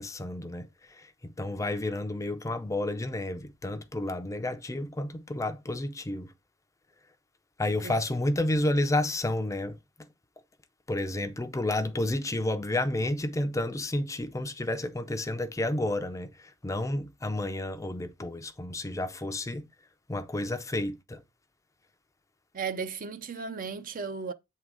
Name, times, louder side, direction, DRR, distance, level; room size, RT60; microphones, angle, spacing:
voice 1, 0.0-6.3 7.6-10.1 10.9-19.7 20.1-21.2, left 1 dB, 15° left, 0.5 m, -31 dB
voice 2, 22.5-24.3, right 5 dB, 40° right, 0.6 m, -35 dB
8.0 x 3.8 x 4.7 m
head